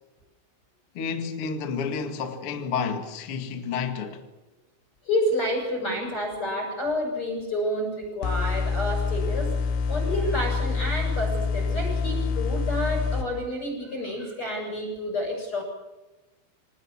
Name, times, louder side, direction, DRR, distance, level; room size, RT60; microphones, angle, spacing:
voice 1, 0.9-4.2, left 6 dB, 70° left, 1.3 m, -30 dB
voice 2, 5.1-9.5 9.9-15.6, left 1 dB, 25° left, 7.4 m, -29 dB
sound 1, 8.2-13.2, left 5 dB, 85° left, 4.4 m, -26 dB
26.0 x 18.5 x 7.3 m
omnidirectional pair, 6.0 m